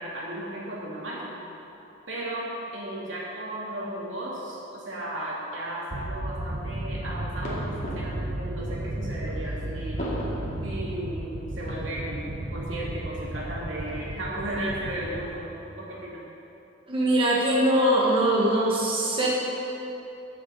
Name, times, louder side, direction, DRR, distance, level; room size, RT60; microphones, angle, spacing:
voice 1, 0.0-1.4 2.1-10.1 10.6-15.5 15.8-16.2, right 1 dB, 75° right, -6 dB, 2.7 m, -35 dB
sound 1, 5.9-16.0, right 1 dB, 45° right, 0.7 m, -34 dB
sound 2, 6.8-15.5, equal, 40° left, 2.5 m, -41 dB
voice 2, 16.9-19.3, right 1 dB, 25° right, -5 dB, 1.3 m, -22 dB
9.2 x 7.4 x 7.1 m, 3.0 s
head